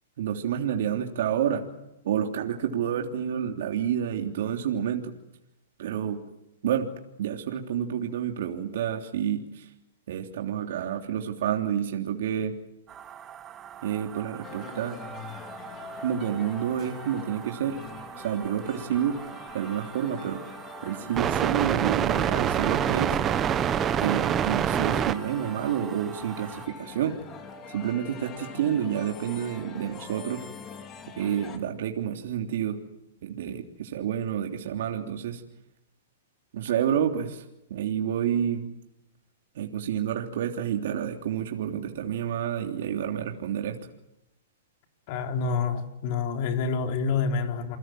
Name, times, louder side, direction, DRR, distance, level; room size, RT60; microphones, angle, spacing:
voice 1, 0.2-1.7 2.0-5.1 5.8-6.2 6.6-6.9 7.2-9.7 10.1-12.6 13.8-15.0 16.0-17.8 18.2-19.2 19.5-20.4 20.8-23.2 24.0-27.2 27.7-30.4 31.2-32.8 33.2-35.4 36.5-37.4 37.7-38.7 39.5-43.8, right 9 dB, 65° right, 2 dB, 3.2 m, -29 dB
sound 1, 12.9-26.7, right 9 dB, 20° right, 1.4 m, -30 dB
sound 2, 14.4-31.6, left 5 dB, 25° left, 3.2 m, -44 dB
voice 2, 45.1-47.8, left 5 dB, 45° left, 4 dB, 4.1 m, -27 dB
29.0 x 23.5 x 7.7 m, 0.89 s
hypercardioid pair, 140°, 0 cm